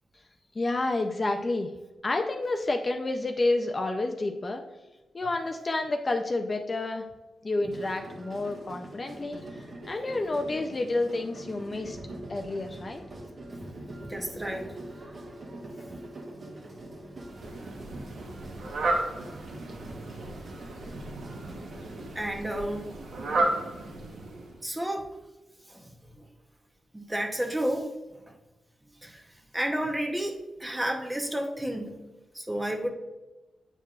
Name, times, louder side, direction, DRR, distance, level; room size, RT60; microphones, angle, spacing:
voice 1, 0.5-1.7 2.0-4.6 5.1-7.0 7.4-9.4 9.9-12.0 12.3-13.0, left 2 dB, 35° left, 4 dB, 0.4 m, -29 dB
sound 1, 7.7-22.2, right 1 dB, 45° right, 1.2 m, -43 dB
voice 2, 14.0-14.8 22.1-22.9 24.6-25.2 25.7-26.2 26.9-27.9 28.3-28.4 29.0-32.0 32.3-32.9, right 1 dB, 15° right, 3 dB, 0.8 m, -31 dB
Fowl, 17.3-24.6, right 2 dB, 80° right, 1.0 m, -33 dB
8.7 x 4.6 x 2.4 m, 1.1 s
wide cardioid pair, 105°, 0 cm